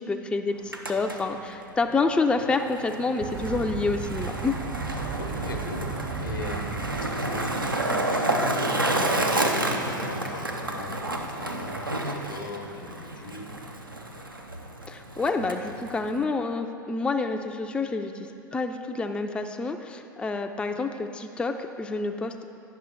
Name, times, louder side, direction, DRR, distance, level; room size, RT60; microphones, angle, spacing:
voice 1, 0.0-4.6 14.9-22.3, left 3 dB, 10° left, 5 dB, 0.3 m, -28 dB
Skateboard, 0.5-16.2, right 1 dB, 90° right, 0.6 m, -30 dB
sound 1, 3.2-8.6, right 6 dB, 45° right, 0.6 m, -36 dB
voice 2, 5.1-13.6, left 2 dB, 75° left, 4 dB, 0.8 m, -40 dB
9.3 x 6.0 x 4.4 m, 2.6 s
figure-of-eight pair, 80°, 11 cm